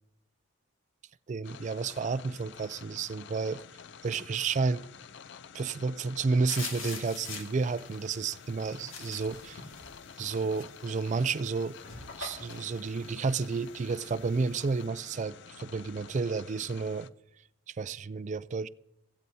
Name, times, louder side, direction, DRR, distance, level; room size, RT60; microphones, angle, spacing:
voice 1, 1.3-3.6 4.0-4.9 5.5-9.6 10.2-11.8 12.2-17.1 17.7-18.7, right 4 dB, 35° right, 0.3 m, -31 dB
sound 1, 1.4-17.1, left 7 dB, 60° left, 0.4 m, -50 dB
sound 2, 6.5-14.8, left 4 dB, 75° left, 2.1 m, -45 dB
16.0 x 15.0 x 2.7 m
head